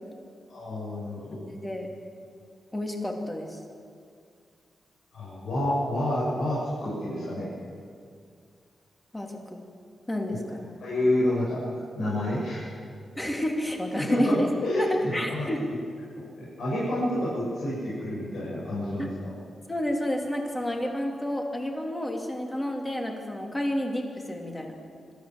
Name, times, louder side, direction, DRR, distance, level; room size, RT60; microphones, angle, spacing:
voice 1, 0.5-1.3 5.1-7.5 10.3-10.4 10.8-11.6 12.0-12.6 14.1-14.4 14.6-15.5 16.6-19.1, left 1 dB, 85° left, -9 dB, 7.3 m, -28 dB
voice 2, 1.4-1.9 2.7-3.6 9.1-9.6 10.1-10.7 13.2-14.5 14.7-15.7 19.0-19.1 19.7-24.7, equal, 15° left, 2 dB, 2.7 m, -30 dB
25.5 x 14.0 x 7.7 m, 2.2 s
wide cardioid pair, 135°, 0 cm